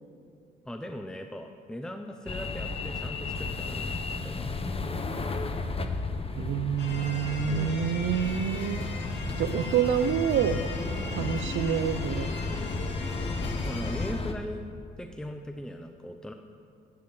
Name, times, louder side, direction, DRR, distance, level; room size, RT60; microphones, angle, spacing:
voice 1, 0.7-4.5 7.5-7.9 13.6-14.6 15.0-16.3, left 1 dB, 5° left, 5 dB, 0.7 m, -39 dB
sound 1, 2.3-14.3, left 3 dB, 30° left, 1.0 m, -33 dB
voice 2, 6.4-8.8 9.4-10.6 11.1-12.3, right 8 dB, 75° right, 12 dB, 0.8 m, -27 dB
sound 2, 6.8-14.1, left 3 dB, 60° left, 2.4 m, -39 dB
11.0 x 9.4 x 7.8 m, 2.4 s
cardioid pair, 90°, 20 cm